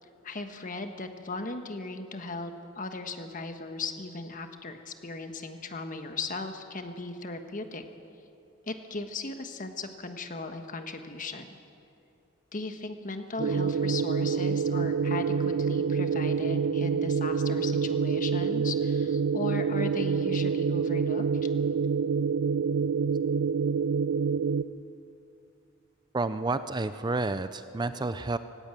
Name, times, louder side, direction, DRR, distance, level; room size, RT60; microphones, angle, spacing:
voice 1, 0.2-7.8 8.7-11.6 12.5-21.5, left 3 dB, 45° left, 6 dB, 1.4 m, -37 dB
sound 1, 13.4-24.6, right 6 dB, 90° right, 0.5 m, -27 dB
voice 2, 26.1-28.4, right 3 dB, 20° right, 12 dB, 0.5 m, -30 dB
18.0 x 17.0 x 9.0 m, 2.7 s
head